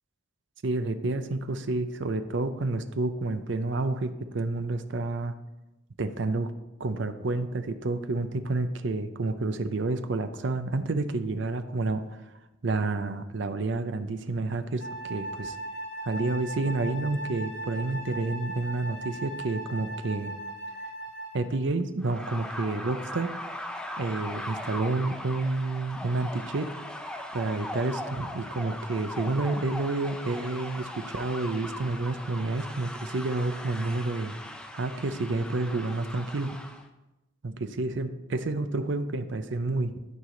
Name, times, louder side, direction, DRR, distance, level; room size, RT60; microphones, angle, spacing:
voice 1, 0.6-5.3 6.0-6.5 6.8-12.2 12.6-15.6 16.0-20.3 21.3-23.3 24.0-26.7 27.3-34.3 34.7-36.6 37.4-40.0, right 2 dB, 60° right, 9 dB, 0.6 m, -29 dB
Wind instrument woodwind instrument, 14.8-21.6, right 1 dB, 85° left, 3.1 m, -38 dB
sound 1, 22.0-36.8, left 1 dB, 5° left, 0.6 m, -39 dB
12.5 x 4.8 x 3.8 m, 0.98 s
head